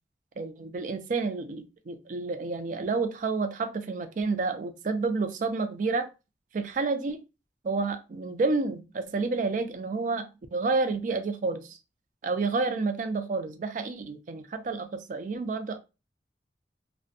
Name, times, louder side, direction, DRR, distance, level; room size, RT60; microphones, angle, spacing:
voice 1, 0.4-6.1 6.5-7.2 7.6-11.8 12.2-15.8, right 3 dB, 45° right, 0.3 m, -30 dB
2.5 x 2.1 x 2.5 m
head